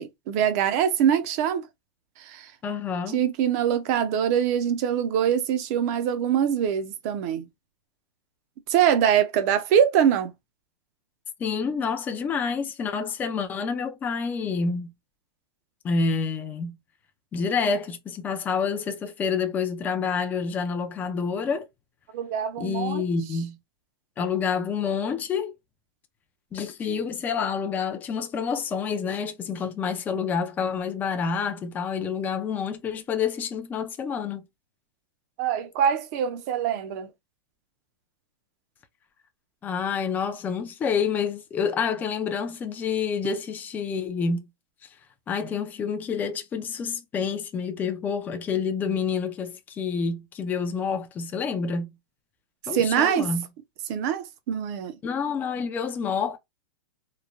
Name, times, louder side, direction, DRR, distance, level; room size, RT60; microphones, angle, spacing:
voice 1, 0.0-1.6 2.3-2.5 3.1-7.5 8.7-10.3 22.1-23.0 35.4-37.1 52.7-53.3 53.9-54.9, right 9 dB, 40° right, 0.6 m, -23 dB
voice 2, 2.6-3.2 11.4-14.9 15.8-16.8 17.3-21.7 22.6-23.6 24.2-25.5 26.5-34.5 39.6-44.5 45.3-51.9 52.7-53.4 55.0-56.4, left 6 dB, 15° left, 0.4 m, -28 dB
3.1 x 2.1 x 2.4 m
supercardioid pair, 150°, 13 cm